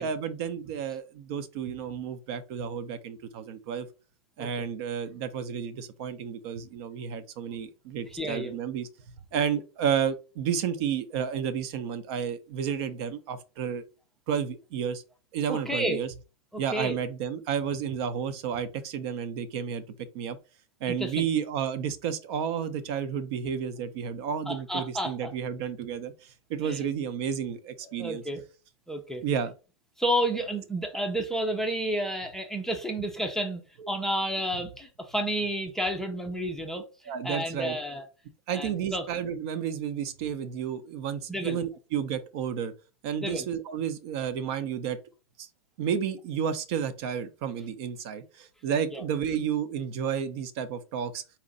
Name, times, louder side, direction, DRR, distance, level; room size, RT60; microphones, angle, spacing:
voice 1, 0.0-3.9 4.4-8.9 9.3-13.8 14.3-15.0 15.3-16.1 16.6-19.8 20.1-20.4 20.8-28.2 29.2-29.5 33.8-33.9 37.1-37.8 38.5-42.7 43.0-45.0 45.4-45.5 45.8-51.2, right 8 dB, 50° right, 0.6 m, -31 dB
voice 2, 8.1-8.5 15.5-16.0 16.5-17.0 20.9-21.2 24.5-25.3 26.6-26.8 27.8-28.4 28.9-29.2 30.0-33.6 33.9-36.8 37.2-38.0 38.5-39.0 41.3-41.6 43.2-43.5 48.9-49.0, right 1 dB, ahead, 0.5 m, -31 dB
4.2 x 2.5 x 3.8 m
hypercardioid pair, 125°, 18 cm